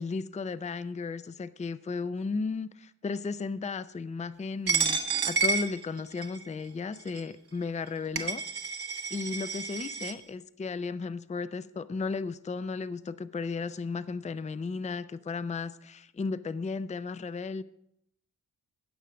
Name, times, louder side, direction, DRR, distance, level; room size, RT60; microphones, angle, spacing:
voice 1, 0.0-8.4 9.1-17.6, left 4 dB, 20° left, 14 dB, 0.4 m, -35 dB
Coin (dropping), 4.7-6.4 7.1-7.2 7.9-8.0 8.2-10.1, right 5 dB, 70° right, 1.4 m, -30 dB
16.0 x 6.3 x 4.9 m, 0.78 s
wide cardioid pair, 80°, 39 cm